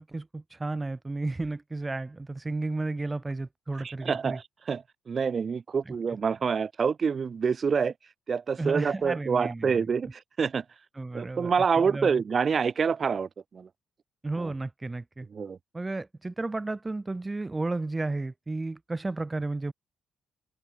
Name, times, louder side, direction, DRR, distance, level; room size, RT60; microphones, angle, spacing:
voice 1, 0.0-4.4 5.9-6.0 8.6-9.9 10.9-12.1 14.2-15.3 15.7-19.7, right 2 dB, 20° right, 3.1 m, -33 dB
voice 2, 3.8-7.9 8.3-10.6 11.1-13.7 14.4-14.5 15.3-15.6, right 6 dB, 45° right, 1.9 m, -27 dB
cardioid pair, 90°, 0 cm